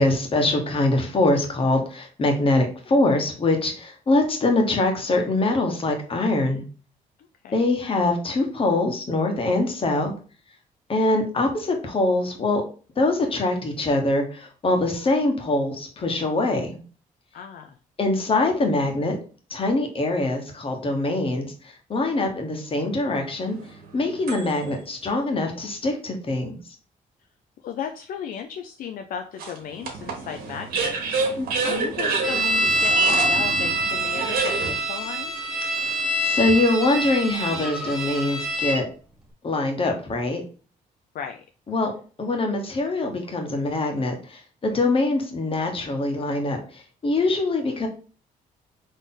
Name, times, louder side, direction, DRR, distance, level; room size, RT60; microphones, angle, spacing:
voice 1, 0.0-6.6 7.5-10.1 10.9-12.6 13.0-16.8 18.0-19.2 19.5-21.5 21.9-23.6 23.9-26.6 31.4-31.9 35.7-35.9 36.2-38.9 39.4-40.4 41.7-41.9 42.2-47.9, left 2 dB, 35° left, 3 dB, 1.4 m, -23 dB
voice 2, 17.3-17.8 27.6-35.3 41.1-41.4, left 8 dB, 70° left, 5 dB, 0.5 m, -35 dB
sound 1, 23.1-24.8 25.5-25.6 29.4-34.7, right 4 dB, 80° right, 1.4 m, -28 dB
sound 2, 32.2-38.8, right 1 dB, ahead, 1.1 m, -25 dB
4.2 x 3.2 x 3.8 m, 0.38 s
cardioid pair, 100°, 15 cm